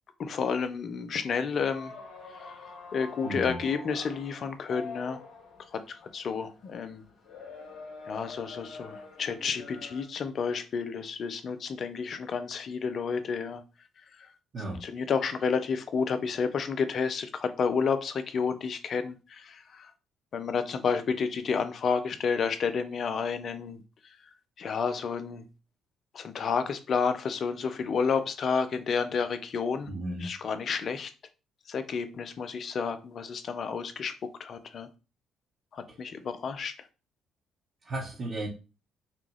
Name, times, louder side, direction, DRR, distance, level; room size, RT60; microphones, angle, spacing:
voice 1, 0.2-1.9 2.3-2.5 2.9-5.2 5.7-7.0 8.1-13.6 14.2-14.3 14.8-19.9 20.3-24.2 24.6-25.4 26.1-29.9 30.2-31.1 31.7-34.1 34.4-34.9 35.7-36.7, left 5 dB, 55° left, 9 dB, 0.6 m, -30 dB
sound 1, 1.7-10.0, left 4 dB, 75° left, 1.9 m, -46 dB
voice 2, 3.2-3.6 14.5-14.8 29.8-30.3 37.8-38.5, right 1 dB, 50° right, -5 dB, 1.4 m, -34 dB
5.8 x 2.4 x 3.2 m, 0.31 s
hypercardioid pair, 55°, 0 cm